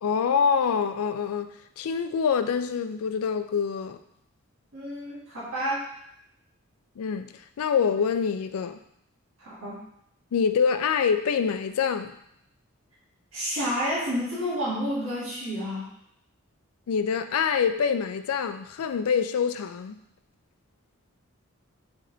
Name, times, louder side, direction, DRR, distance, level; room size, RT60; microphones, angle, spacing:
voice 1, 0.0-4.0 7.0-8.8 10.3-12.2 16.9-20.0, left 6 dB, 85° left, 0.4 m, -26 dB
voice 2, 4.7-5.9 9.4-9.8 13.3-15.9, equal, 75° right, 1.5 m, -30 dB
3.9 x 3.4 x 3.8 m
head